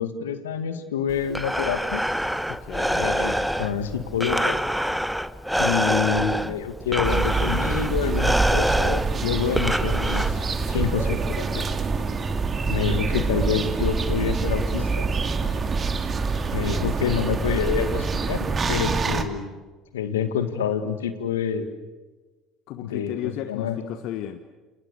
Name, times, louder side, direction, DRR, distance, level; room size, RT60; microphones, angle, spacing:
voice 1, 0.0-2.0 3.0-4.6 5.6-10.3 10.7-11.7 12.7-14.9 15.4-15.6 16.5-19.6 19.9-21.7 22.8-23.8, left 8 dB, 80° left, 9 dB, 2.0 m, -27 dB
Breathing, 1.1-10.7, equal, ahead, 1.2 m, -26 dB
voice 2, 2.5-3.0 22.7-24.4, left 12 dB, 60° left, 8 dB, 1.4 m, -34 dB
sound 1, 7.0-19.2, right 4 dB, 30° right, 2.5 m, -25 dB
29.5 x 28.0 x 6.7 m, 1.3 s
figure-of-eight pair, 60°, 0 cm